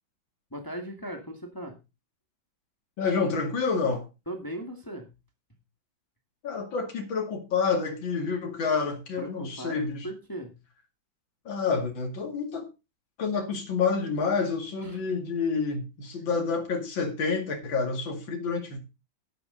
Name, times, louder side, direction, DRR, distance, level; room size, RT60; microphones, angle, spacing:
voice 1, 0.5-1.8 4.3-5.1 9.2-10.6 14.8-15.0 16.2-16.3, right 1 dB, 10° left, 2.0 m, -38 dB
voice 2, 3.0-4.1 6.4-10.1 11.4-12.7 13.2-18.8, left 5 dB, 80° left, 2.9 m, -28 dB
11.5 x 10.5 x 4.0 m
omnidirectional pair, 2.1 m